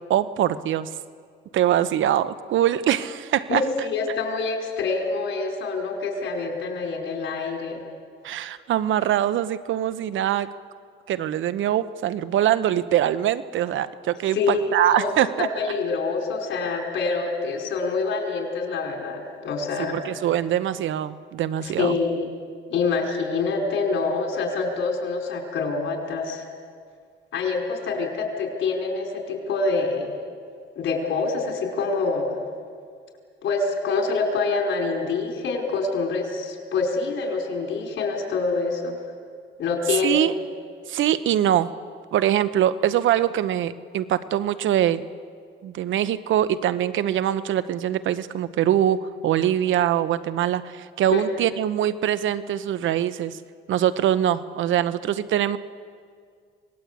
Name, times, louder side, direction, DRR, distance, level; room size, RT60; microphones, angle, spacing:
voice 1, 0.1-0.9 1.5-3.6 8.2-10.5 11.1-15.5 19.9-21.9 40.0-40.3 40.9-41.7 42.1-45.0 45.6-53.4 53.7-55.6, right 11 dB, 75° right, 14 dB, 1.0 m, -23 dB
voice 2, 3.5-7.8 14.3-20.0 21.6-22.3 22.7-26.4 27.3-30.2 30.7-32.4 33.4-39.0 39.6-40.2 51.1-51.2, left 4 dB, 70° left, 2 dB, 5.1 m, -26 dB
26.0 x 20.0 x 8.3 m, 2.1 s
cardioid pair, 90°, 20 cm